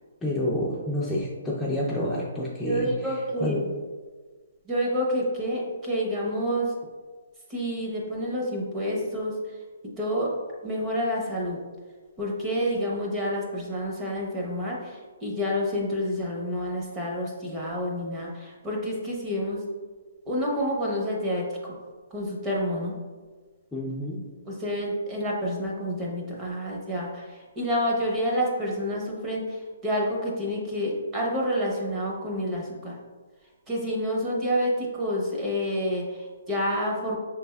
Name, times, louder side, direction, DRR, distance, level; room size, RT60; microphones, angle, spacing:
voice 1, 0.2-3.6 23.7-24.2, left 1 dB, 5° left, -6 dB, 0.4 m, -29 dB
voice 2, 2.6-3.7 4.7-6.7 7.5-9.3 10.0-10.3 10.6-11.6 12.2-19.6 20.3-21.5 22.1-22.9 24.5-32.9 33.7-37.2, equal, 15° right, -3 dB, 0.8 m, -28 dB
5.6 x 3.3 x 2.3 m, 1.4 s
hypercardioid pair, 155°, 0 cm